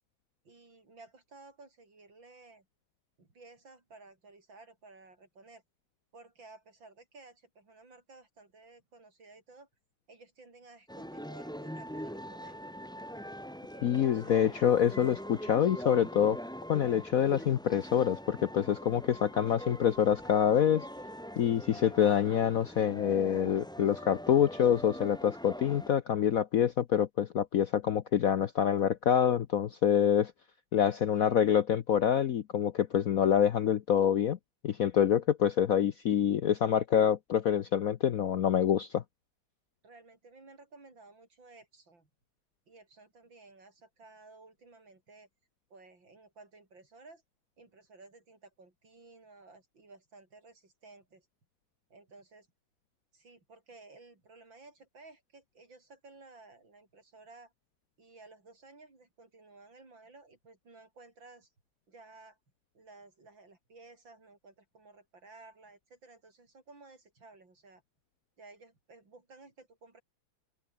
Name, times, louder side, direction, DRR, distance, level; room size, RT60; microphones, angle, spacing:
voice 1, 0.4-2.7 3.2-5.6 6.1-9.7 10.1-12.6 13.7-14.5 31.1-31.4 39.8-42.1 42.7-45.3 45.7-47.2 47.6-51.3 51.9-52.5 53.1-57.5 58.0-61.5 61.9-62.4 62.7-67.8 68.4-70.0, right 3 dB, 65° right, 6.0 m, -55 dB
sound 1, 10.9-25.9, equal, ahead, 4.0 m, -43 dB
voice 2, 13.8-16.4 16.7-20.8 21.4-30.3 30.7-34.4 34.6-39.0, left 9 dB, 60° left, 0.9 m, -26 dB
open air
omnidirectional pair, 2.2 m